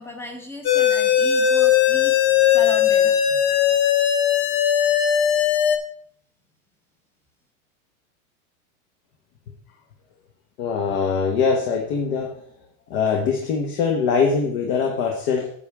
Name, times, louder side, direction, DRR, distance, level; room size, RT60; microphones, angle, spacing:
voice 1, 0.0-3.4, equal, 5° left, 4 dB, 1.0 m, -36 dB
sound 1, 0.7-5.8, left 9 dB, 25° left, 0.8 m, -18 dB
voice 2, 10.6-12.4 12.9-15.5, left 5 dB, 45° left, 2 dB, 1.4 m, -22 dB
10.0 x 7.0 x 3.6 m, 0.63 s
supercardioid pair, 150°, 42 cm